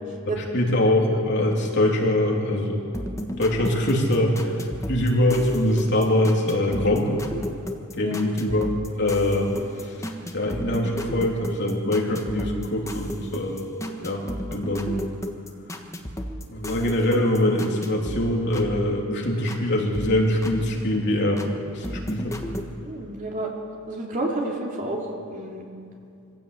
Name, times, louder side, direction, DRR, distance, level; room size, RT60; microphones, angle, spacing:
voice 1, 0.4-2.8 3.4-4.6 4.9-7.1 8.0-8.7 9.0-9.5 9.8-10.1 10.3-13.7 14.0-14.2 14.5-15.0 16.5-21.4 21.7-22.3, left 1 dB, 55° left, -1 dB, 3.3 m, -23 dB
sound 1, 2.9-19.6 19.9-21.5 21.8-22.7, equal, 15° left, 1.4 m, -35 dB
voice 2, 22.8-23.5 23.9-25.6, right 1 dB, 40° right, -1 dB, 3.2 m, -30 dB
23.5 x 15.5 x 8.4 m, 2.4 s
head